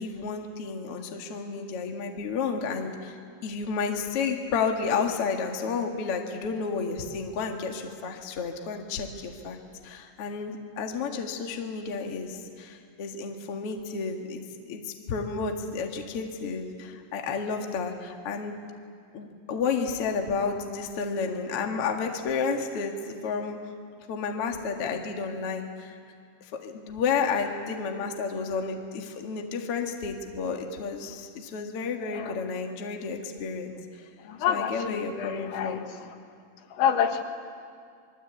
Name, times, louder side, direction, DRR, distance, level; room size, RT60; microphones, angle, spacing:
voice 1, 0.0-9.6 9.8-14.4 14.7-18.6 19.1-23.6 24.1-26.0 26.4-34.1 34.5-35.8, left 5 dB, 90° left, 3 dB, 1.2 m, -31 dB
voice 2, 34.3-35.9 36.7-37.2, left 8 dB, 70° left, 5 dB, 3.6 m, -27 dB
27.0 x 23.0 x 8.2 m, 2.2 s
omnidirectional pair, 6.0 m